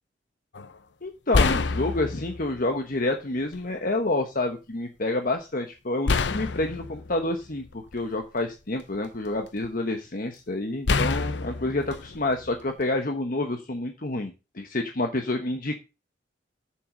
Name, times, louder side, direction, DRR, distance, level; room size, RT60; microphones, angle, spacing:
sound 1, 0.5-0.7 1.3-2.6 3.5-3.6 6.1-8.2 8.8-9.7 10.9-12.9, left 4 dB, 70° left, 0.7 m, -27 dB
voice 1, 1.0-15.8, left 2 dB, 50° left, 5 dB, 1.1 m, -28 dB
7.7 x 7.1 x 6.3 m, 0.29 s
head